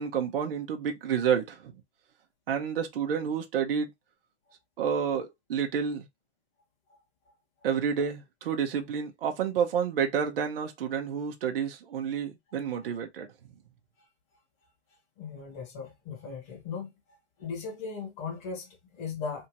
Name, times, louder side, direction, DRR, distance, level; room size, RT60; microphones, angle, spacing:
voice 1, 0.0-1.7 2.5-3.9 4.8-6.0 7.6-13.3, right 7 dB, 55° right, 0.9 m, -29 dB
voice 2, 15.2-16.9 17.4-19.5, left 5 dB, 25° left, 1.6 m, -37 dB
3.5 x 2.7 x 2.9 m
hypercardioid pair, 175°, 33 cm